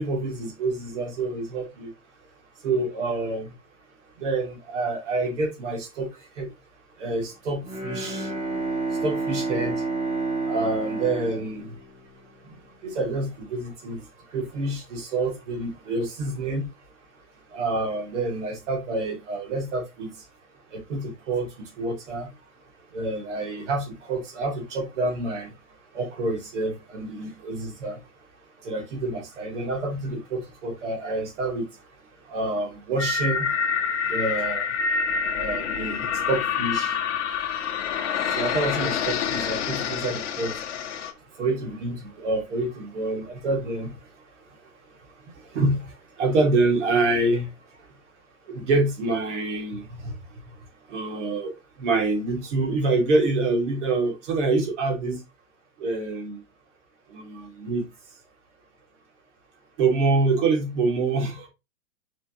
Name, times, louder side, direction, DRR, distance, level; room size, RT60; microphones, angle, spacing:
voice 1, 0.0-1.9 2.6-3.5 4.2-6.5 7.0-8.3 8.9-9.8 10.4-11.8 12.4-16.7 17.5-20.1 20.7-22.3 22.9-25.5 25.9-28.0 28.6-31.7 32.3-33.5 34.0-34.8 35.3-37.0 38.3-40.6 41.4-44.0 45.5-47.5 48.5-50.2 50.9-51.5 51.8-55.2 55.8-56.4 57.1-57.9 59.8-61.5, right 2 dB, 50° right, 2.7 m, -27 dB
Bowed string instrument, 7.6-12.5, right 3 dB, 15° right, 1.9 m, -30 dB
sound 1, 33.0-41.1, left 6 dB, 50° left, 1.2 m, -27 dB
6.5 x 5.0 x 3.0 m
supercardioid pair, 175°, 45 cm